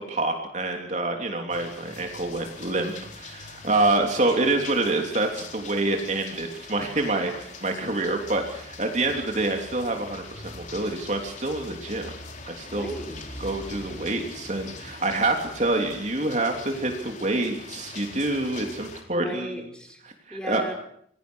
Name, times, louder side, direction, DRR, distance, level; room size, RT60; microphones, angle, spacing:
voice 1, 0.1-7.3 7.6-12.1 12.4-12.9 13.4-19.5 20.3-20.6, right 2 dB, 40° right, 3 dB, 3.3 m, -27 dB
sound 1, 1.5-19.0, left 3 dB, 40° left, 4.2 m, -42 dB
voice 2, 12.7-13.5 19.1-20.0 20.3-20.7, equal, 5° left, 4 dB, 4.5 m, -37 dB
27.5 x 21.5 x 6.5 m, 0.69 s
head